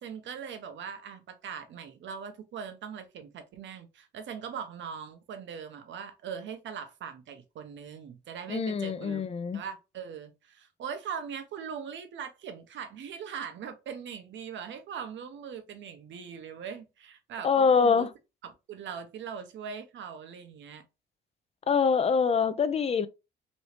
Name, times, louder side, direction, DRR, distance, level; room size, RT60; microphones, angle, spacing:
voice 1, 0.0-9.2 9.5-18.1 18.4-20.8, right 7 dB, 70° right, 0.8 m, -41 dB
voice 2, 8.5-9.6 17.4-18.1 21.7-23.1, left 5 dB, 30° left, 0.4 m, -24 dB
3.1 x 2.7 x 3.1 m
cardioid pair, 90°, 20 cm